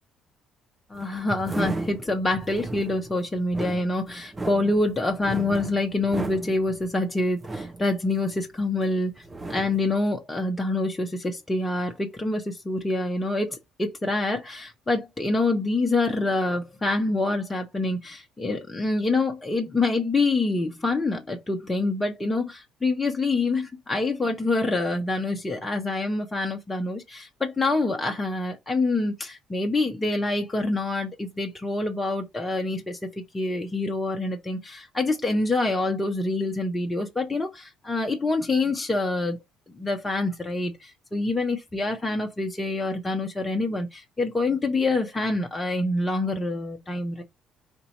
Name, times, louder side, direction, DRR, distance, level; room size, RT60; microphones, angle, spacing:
voice 1, 0.9-9.2 9.5-39.4 39.7-47.2, left 2 dB, 20° left, 1.1 m, -26 dB
sound 1, 0.9-8.8 9.2-10.0, right 2 dB, 20° right, 0.9 m, -35 dB
4.5 x 2.8 x 4.0 m
figure-of-eight pair, 50°, 0 cm